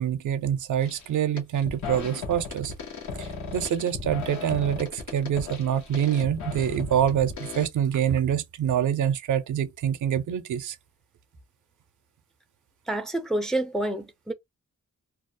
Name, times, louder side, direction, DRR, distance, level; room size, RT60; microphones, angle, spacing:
voice 1, 0.0-2.7 3.2-10.8, right 9 dB, 75° right, 0.5 m, -26 dB
sound 1, 0.8-1.1 1.4-7.7, left 5 dB, 70° left, 0.7 m, -36 dB
voice 2, 12.9-14.3, right 1 dB, ahead, 0.3 m, -28 dB
2.3 x 2.0 x 2.6 m
wide cardioid pair, 105°, 30 cm